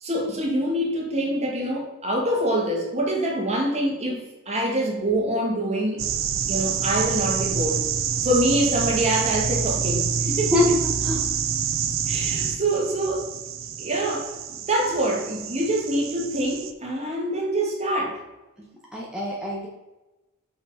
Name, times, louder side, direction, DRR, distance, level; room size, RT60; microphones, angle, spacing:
voice 1, 0.0-6.0 6.5-7.8 8.2-10.5 12.1-13.2 13.8-14.3 14.7-18.2, right 1 dB, 30° right, -1 dB, 1.8 m, -25 dB
sound 1, 6.0-16.7, right 7 dB, 65° right, 0.6 m, -27 dB
voice 2, 18.9-19.7, left 2 dB, 5° right, -5 dB, 1.1 m, -24 dB
5.9 x 5.6 x 4.7 m, 1.1 s
head